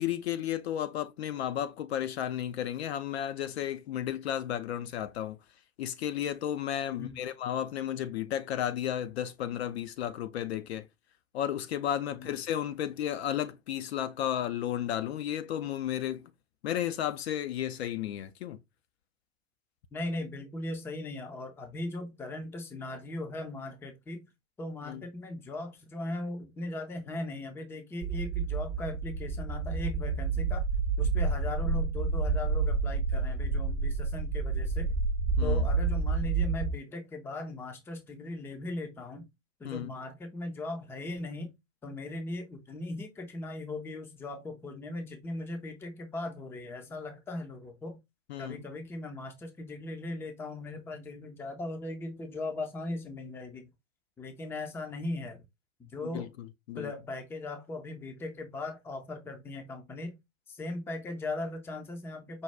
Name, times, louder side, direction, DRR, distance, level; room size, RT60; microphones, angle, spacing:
voice 1, 0.0-5.4 5.8-10.9 11.3-16.3 16.6-18.6 24.8-25.0 35.4-35.7 39.6-39.9 48.3-48.6 56.1-56.3 56.7-56.9, left 10 dB, 55° left, 0.5 m, -33 dB
voice 2, 6.9-7.2 12.1-12.3 19.9-24.2 24.6-30.6 31.0-34.9 35.4-39.3 39.6-41.5 41.8-48.0 48.4-53.7 54.2-55.4 55.8-56.3 56.8-60.2 60.5-62.4, left 2 dB, 5° left, 0.5 m, -38 dB
sound 1, 28.0-36.8, right 4 dB, 40° right, 0.9 m, -29 dB
5.3 x 2.3 x 3.2 m
figure-of-eight pair, 105°, 40 cm